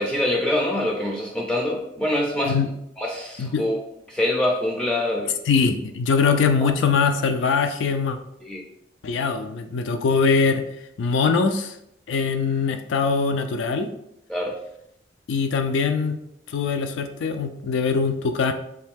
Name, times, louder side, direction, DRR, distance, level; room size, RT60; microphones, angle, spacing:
voice 1, 0.0-2.6 3.0-3.8 4.1-5.3 8.4-8.7 14.3-14.5, left 1 dB, 5° left, -1 dB, 0.3 m, -24 dB
voice 2, 5.5-8.2 9.0-10.6 11.0-11.8 12.1-13.9 15.3-16.2 16.5-18.5, left 5 dB, 80° left, 8 dB, 0.4 m, -22 dB
3.2 x 2.7 x 3.5 m, 0.79 s
head